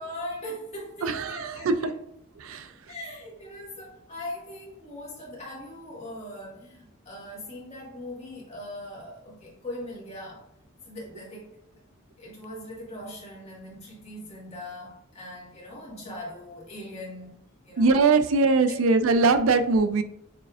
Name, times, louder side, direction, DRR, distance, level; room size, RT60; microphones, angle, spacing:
voice 1, 0.0-2.0 2.9-10.4 10.8-11.6 12.2-17.4 17.6-18.0, left 1 dB, 30° left, -4 dB, 1.7 m, -40 dB
voice 2, 1.0-1.9 2.4-2.7 17.8-20.0, right 4 dB, 80° right, 10 dB, 0.4 m, -21 dB
6.6 x 3.2 x 2.4 m, 0.80 s
head